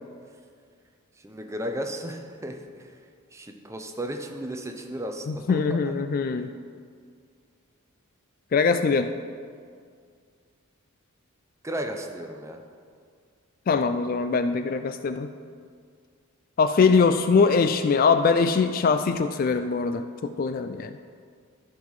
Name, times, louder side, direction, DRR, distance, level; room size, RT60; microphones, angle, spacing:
voice 1, 1.2-2.9 3.3-6.0 6.4-6.5 11.6-12.6, right 1 dB, 15° right, 4 dB, 0.7 m, -35 dB
voice 2, 5.3-6.5 8.5-9.1 13.7-15.3 16.6-21.0, left 5 dB, 40° left, 10 dB, 0.3 m, -22 dB
14.0 x 5.5 x 4.8 m, 2.1 s
head